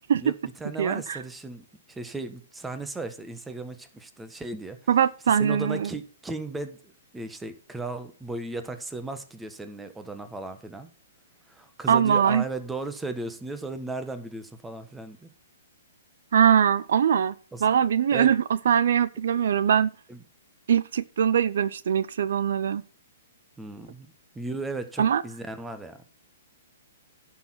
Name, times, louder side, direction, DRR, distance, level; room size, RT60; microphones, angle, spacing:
voice 1, 0.2-4.8 5.3-10.9 11.5-15.3 17.5-17.7 18.1-18.3 20.1-20.2 23.6-26.0, right 2 dB, 5° right, 1.4 m, -36 dB
voice 2, 0.8-1.2 4.9-5.9 11.9-12.4 16.3-17.3 17.6-19.9 20.7-22.8 25.0-25.2, right 8 dB, 65° right, 0.6 m, -22 dB
11.5 x 6.5 x 5.9 m
hypercardioid pair, 130°, 0 cm